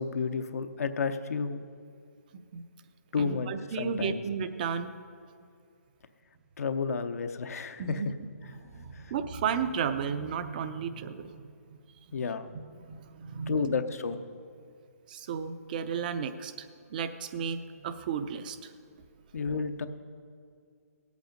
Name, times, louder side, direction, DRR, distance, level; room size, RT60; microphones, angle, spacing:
voice 1, 0.0-1.6 3.1-3.5 3.7-4.2 6.6-8.0 8.9-9.1 12.1-12.5 13.5-14.2 19.3-19.9, left 5 dB, 70° left, 8 dB, 0.7 m, -31 dB
voice 2, 3.2-4.9 7.8-8.1 8.4-11.4 11.7-11.8 12.1-13.7 15.1-18.7, right 7 dB, 35° right, 11 dB, 0.6 m, -34 dB
17.5 x 8.3 x 5.2 m, 2.3 s
hypercardioid pair, 160°, 9 cm